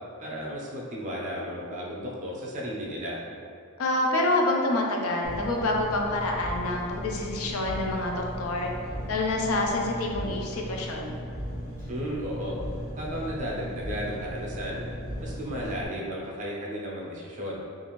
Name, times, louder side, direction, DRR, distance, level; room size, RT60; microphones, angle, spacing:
voice 1, 0.2-3.2 11.9-12.6 13.0-14.9 15.2-17.6, equal, 35° right, -3 dB, 0.4 m, -34 dB
voice 2, 3.8-8.7 9.1-11.1, left 2 dB, 70° left, 0 dB, 0.4 m, -27 dB
Engine, 5.2-15.9, equal, 35° left, 0.8 m, -37 dB
2.5 x 2.4 x 3.0 m, 2.4 s
head